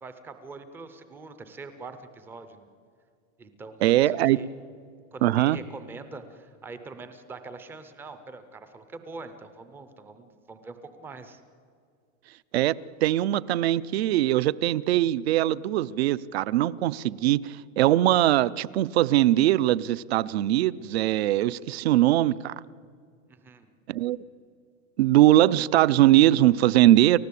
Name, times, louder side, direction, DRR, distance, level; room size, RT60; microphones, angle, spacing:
voice 1, 0.0-2.7 3.4-4.5 5.1-11.4 23.3-23.7, right 3 dB, 5° right, 0.5 m, -43 dB
voice 2, 3.8-4.4 5.2-5.6 12.5-12.8 13.0-22.5 23.9-24.2 25.0-27.2, right 14 dB, 55° right, 0.6 m, -21 dB
30.0 x 14.5 x 8.4 m
supercardioid pair, 175°, 39 cm